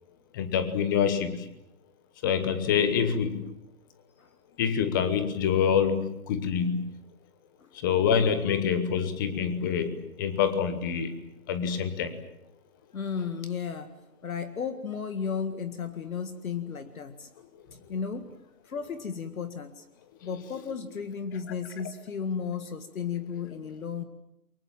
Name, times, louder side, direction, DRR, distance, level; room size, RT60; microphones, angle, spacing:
voice 1, 0.3-1.5 2.2-3.5 4.6-6.9 7.7-11.2 11.5-12.2, left 7 dB, 15° left, 11 dB, 1.0 m, -26 dB
voice 2, 12.9-13.9 14.2-17.3 17.9-18.4 18.7-19.9 20.2-24.0, left 6 dB, 60° left, 10 dB, 1.9 m, -34 dB
30.0 x 23.5 x 7.4 m, 0.79 s
hypercardioid pair, 155°, 48 cm